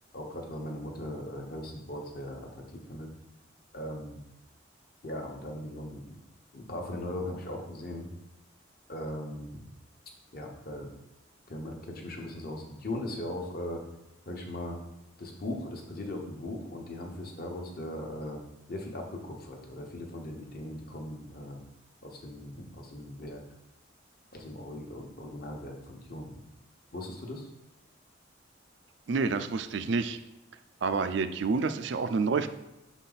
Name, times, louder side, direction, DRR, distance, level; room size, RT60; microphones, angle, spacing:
voice 1, 0.1-3.1 3.7-4.2 5.0-6.1 6.5-8.1 8.9-9.6 10.3-10.9 11.5-13.8 14.2-14.8 15.2-18.4 18.7-21.6 22.0-23.4 24.3-26.4 26.9-27.5, left 1 dB, 50° left, 1 dB, 1.0 m, -39 dB
voice 2, 29.1-30.2 30.8-32.5, right 4 dB, 60° right, 10 dB, 0.4 m, -28 dB
5.8 x 4.1 x 4.0 m, 0.95 s
head